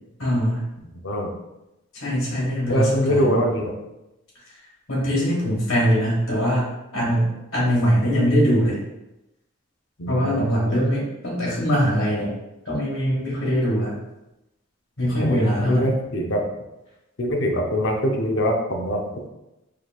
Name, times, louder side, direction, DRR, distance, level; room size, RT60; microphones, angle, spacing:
voice 1, 0.2-0.7 1.9-3.4 4.9-8.8 10.1-12.3 12.6-14.0 15.0-15.9, equal, 75° left, -6 dB, 1.5 m, -22 dB
voice 2, 2.7-3.7 10.0-10.4 15.2-16.5 17.2-19.3, equal, 60° left, 2 dB, 0.6 m, -23 dB
4.8 x 3.0 x 2.4 m, 0.94 s
head